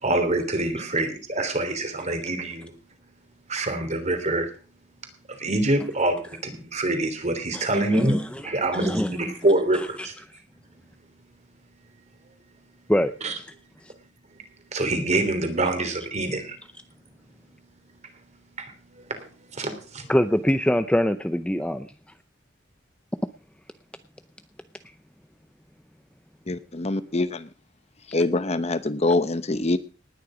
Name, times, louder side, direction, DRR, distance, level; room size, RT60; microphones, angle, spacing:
voice 1, 0.0-2.7 3.5-4.5 5.4-10.1 13.2-13.3 14.7-16.6 18.6-20.1, right 2 dB, 40° right, 7 dB, 3.2 m, -26 dB
voice 2, 7.9-9.1 9.7-9.9 12.9-13.1 13.8-13.9 20.1-21.9, equal, 5° left, 10 dB, 0.6 m, -24 dB
voice 3, 26.5-27.5 28.1-29.8, left 2 dB, 35° left, 12 dB, 0.9 m, -24 dB
19.0 x 10.0 x 5.0 m, 0.36 s
head